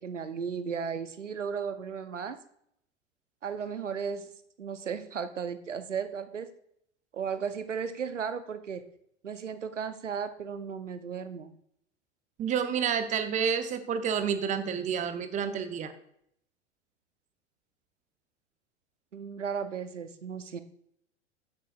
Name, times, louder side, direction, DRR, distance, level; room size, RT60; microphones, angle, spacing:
voice 1, 0.0-2.4 3.4-4.3 4.6-6.5 7.1-8.8 9.2-11.6 19.1-20.6, right 6 dB, 80° right, 11 dB, 0.8 m, -35 dB
voice 2, 12.4-15.9, right 7 dB, 20° right, 10 dB, 0.8 m, -29 dB
15.5 x 6.5 x 2.4 m, 0.71 s
figure-of-eight pair, 90°, 36 cm